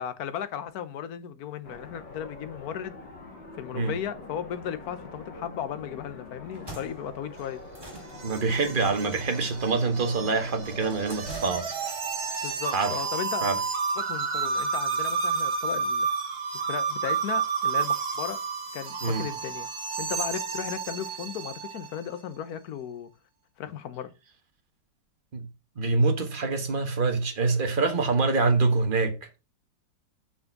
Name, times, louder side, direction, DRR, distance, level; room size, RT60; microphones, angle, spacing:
voice 1, 0.0-3.0 3.6-7.6 12.4-13.5 14.0-16.1 16.5-18.4 18.7-19.7 20.0-23.1 23.6-24.1, left 9 dB, 60° left, 1.3 m, -35 dB
sound 1, 1.6-11.2, left 3 dB, 85° left, 2.9 m, -44 dB
sound 2, 6.4-12.1, right 2 dB, 10° right, 3.4 m, -46 dB
sound 3, 7.4-22.0, right 5 dB, 60° right, 2.0 m, -31 dB
voice 2, 8.2-11.7 12.3-12.4 12.7-12.9 13.4-13.6 19.0-19.2 25.3-25.4 25.8-29.1, right 3 dB, 30° right, 1.5 m, -25 dB
6.4 x 6.2 x 5.9 m
omnidirectional pair, 2.0 m